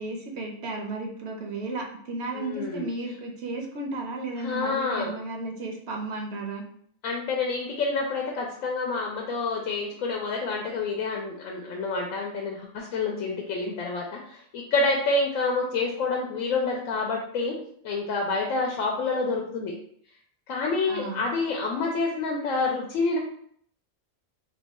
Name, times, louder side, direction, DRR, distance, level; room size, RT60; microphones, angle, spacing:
voice 1, 0.0-6.6 20.9-21.2, right 2 dB, 65° right, 1 dB, 0.8 m, -34 dB
voice 2, 2.3-2.9 4.4-5.1 7.0-17.6 17.8-19.7 20.5-23.2, left 3 dB, 85° left, 0 dB, 1.0 m, -28 dB
2.9 x 2.2 x 4.0 m, 0.65 s
omnidirectional pair, 1.4 m